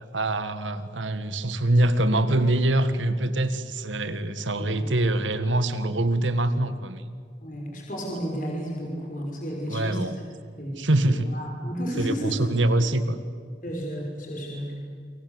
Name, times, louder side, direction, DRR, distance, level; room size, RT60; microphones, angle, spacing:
voice 1, 0.1-7.0 9.7-10.2 10.8-11.3 12.0-13.2, right 1 dB, 85° right, 11 dB, 1.9 m, -24 dB
voice 2, 7.4-10.0 10.6-10.8 11.1-12.4 13.6-14.7, equal, 45° left, -1 dB, 5.6 m, -32 dB
29.0 x 23.5 x 8.1 m, 2.1 s
head